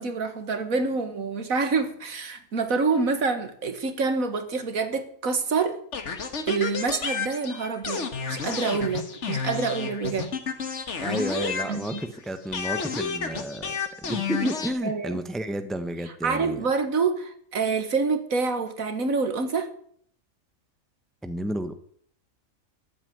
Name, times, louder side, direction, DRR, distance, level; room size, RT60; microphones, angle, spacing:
voice 1, 0.0-5.8 6.5-10.3 11.7-12.0 14.8-15.2 16.2-19.7, right 4 dB, 75° right, 2.0 m, -27 dB
sound 1, 5.9-12.2 12.5-14.7, left 6 dB, 55° left, 1.7 m, -31 dB
voice 2, 11.0-16.6 21.2-21.7, right 1 dB, ahead, 1.0 m, -31 dB
13.5 x 8.4 x 9.5 m
omnidirectional pair, 1.4 m